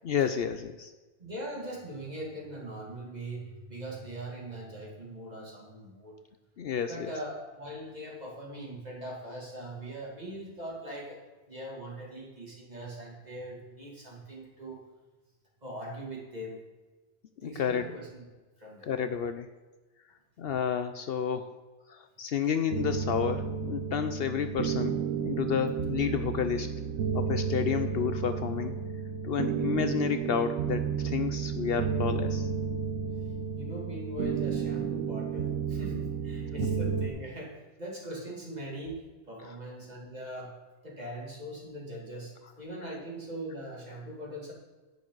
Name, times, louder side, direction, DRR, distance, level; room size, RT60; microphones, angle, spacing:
voice 1, 0.0-0.9 6.6-7.1 17.4-17.9 18.9-19.5 20.4-21.5 21.9-26.7 27.1-28.8 29.2-32.5, left 7 dB, 65° left, 9 dB, 0.8 m, -31 dB
voice 2, 1.2-6.1 6.9-11.2 11.5-14.8 15.6-16.6 17.4-18.2 18.6-18.9 33.6-39.0 39.3-40.5 40.8-44.5, right 1 dB, 35° right, -3 dB, 2.7 m, -41 dB
sound 1, 22.7-37.1, right 7 dB, 90° right, 1.2 m, -32 dB
10.5 x 9.1 x 3.9 m, 1.2 s
omnidirectional pair, 1.2 m